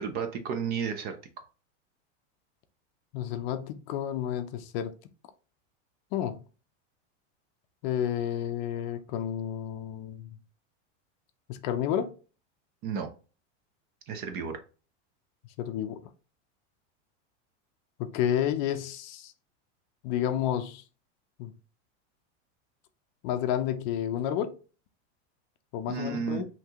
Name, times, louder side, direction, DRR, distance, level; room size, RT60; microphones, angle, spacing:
voice 1, 0.0-1.4 12.8-13.1 14.1-14.6 25.9-26.4, right 6 dB, 30° right, 0.5 m, -33 dB
voice 2, 3.1-4.9 6.1-6.4 7.8-10.3 11.5-12.1 15.6-16.0 18.0-19.3 20.0-20.8 21.4-21.5 23.2-24.5 25.7-26.4, left 10 dB, 40° left, 0.5 m, -30 dB
5.7 x 2.9 x 2.8 m
supercardioid pair, 160°, 35 cm